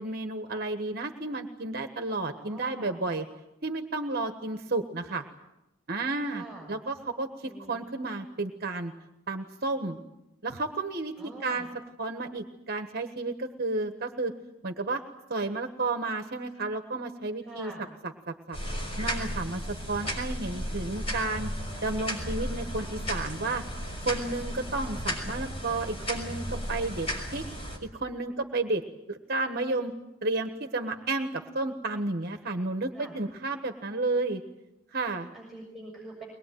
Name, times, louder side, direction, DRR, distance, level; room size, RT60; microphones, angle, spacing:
voice 1, 0.0-3.2 3.6-5.2 5.9-8.9 9.3-10.0 10.4-11.7 12.0-14.3 14.6-15.0 15.3-17.7 18.0-18.6 19.0-21.5 21.8-23.6 24.0-27.4 27.8-28.8 29.1-29.9 30.2-34.4 34.9-35.3, right 3 dB, 45° right, 6 dB, 1.4 m, -32 dB
voice 2, 2.4-3.0 6.3-6.7 7.4-7.8 11.2-11.6 17.4-17.9 32.9-33.1 35.3-36.2, right 2 dB, ahead, -2 dB, 6.6 m, -45 dB
sound 1, 18.5-27.8, equal, 25° left, 5.9 m, -34 dB
23.0 x 21.0 x 9.3 m, 0.91 s
head